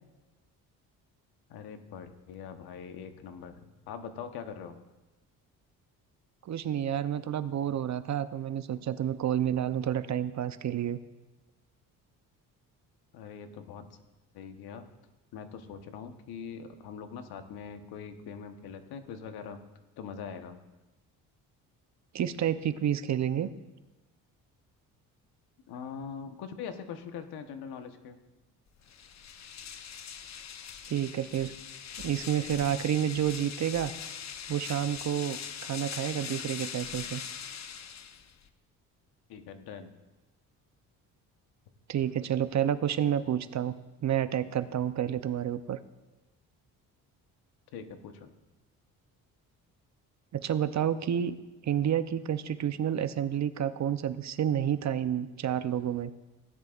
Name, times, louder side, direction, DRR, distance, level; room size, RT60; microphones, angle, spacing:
voice 1, 1.5-4.8 13.1-13.8 14.3-14.8 15.3-19.6 20.0-20.6 25.7-28.2 39.3-39.9 47.7-48.3, left 6 dB, 75° left, 7 dB, 1.2 m, -42 dB
voice 2, 6.5-11.0 22.1-23.5 30.9-31.5 32.0-33.9 34.5-37.2 41.9-43.8 44.0-45.8 50.3-51.4 51.6-56.1, right 10 dB, 45° right, 12 dB, 0.7 m, -29 dB
sound 1, 28.8-38.5, left 8 dB, 45° left, 0.9 m, -41 dB
16.5 x 10.5 x 2.5 m, 1.1 s
supercardioid pair, 70°, 38 cm